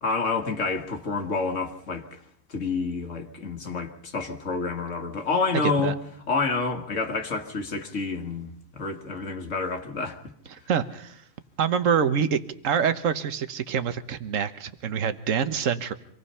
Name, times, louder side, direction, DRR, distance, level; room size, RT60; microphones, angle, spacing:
voice 1, 0.0-2.2 2.5-6.0 6.3-10.2, left 4 dB, 70° left, 2.0 m, -28 dB
voice 2, 5.6-5.9 10.5-11.2 11.6-12.4 12.6-15.9, right 7 dB, 75° right, 1.4 m, -26 dB
25.5 x 18.5 x 5.6 m
omnidirectional pair, 1.4 m